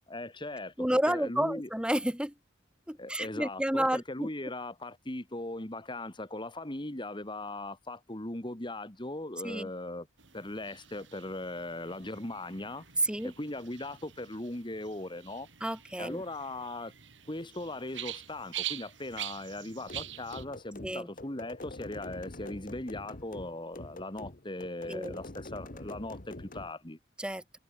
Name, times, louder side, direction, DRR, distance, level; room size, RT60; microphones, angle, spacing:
voice 1, 0.1-1.7 3.0-10.1 10.3-15.5 16.0-16.9 17.3-27.0, left 2 dB, 25° left, 1.9 m, -39 dB
voice 2, 0.8-2.3 2.9-4.3 9.4-9.7 13.0-13.3 15.6-16.2 20.8-21.1 24.9-25.2 27.2-27.4, right 1 dB, 5° right, 2.9 m, -30 dB
sound 1, 10.2-20.4, right 12 dB, 75° right, 6.7 m, -45 dB
sound 2, 19.9-26.7, left 2 dB, 45° left, 1.5 m, -45 dB
head